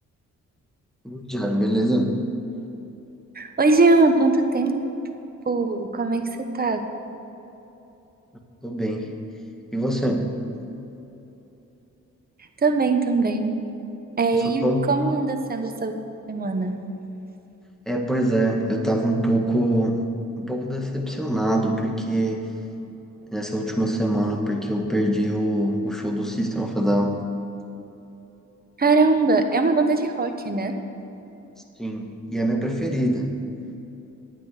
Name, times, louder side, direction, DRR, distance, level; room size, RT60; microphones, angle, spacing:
voice 1, 1.0-2.2 8.6-9.1 9.7-10.3 14.3-14.9 17.9-20.0 20.4-22.5 23.3-27.2 31.8-33.3, right 1 dB, ahead, 2 dB, 1.8 m, -24 dB
voice 2, 3.3-4.8 5.5-6.3 6.5-6.8 12.6-13.6 14.2-15.9 16.3-16.7 28.8-30.7, right 3 dB, 30° right, 5 dB, 1.2 m, -21 dB
10.5 x 9.0 x 6.6 m, 3.0 s
cardioid pair, 70°, 30 cm